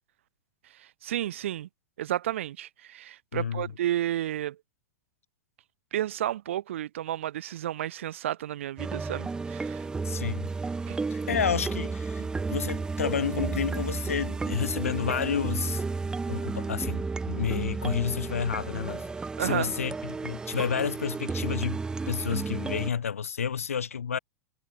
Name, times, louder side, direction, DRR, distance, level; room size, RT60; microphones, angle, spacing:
voice 1, 0.7-1.7 2.0-4.6 5.9-9.9 10.9-11.0 12.2-12.3 19.4-19.7, right 12 dB, 60° right, 0.5 m, -32 dB
voice 2, 3.3-3.7 10.0-10.5 11.1-15.8 16.3-19.1 19.4-21.8 22.1-24.2, left 7 dB, 70° left, 1.0 m, -30 dB
sound 1, 8.8-22.9, right 4 dB, 10° right, 0.5 m, -32 dB
figure-of-eight pair, 95°, 8 cm